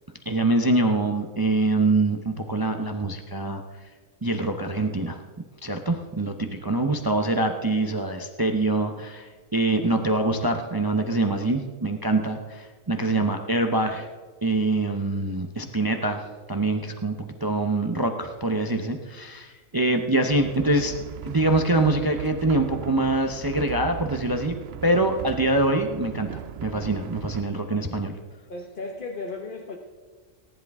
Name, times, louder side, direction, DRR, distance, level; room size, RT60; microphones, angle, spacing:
voice 1, 0.3-3.6 4.2-5.2 5.6-14.1 14.4-16.2 16.5-20.9 21.2-24.6 24.8-26.3 26.6-28.1, right 2 dB, 20° right, 5 dB, 0.6 m, -24 dB
sound 1, 20.3-27.4, right 10 dB, 65° right, 0.7 m, -38 dB
voice 2, 28.5-29.8, left 3 dB, 45° left, 1 dB, 1.1 m, -35 dB
19.0 x 10.5 x 3.6 m, 1.5 s
omnidirectional pair, 1.4 m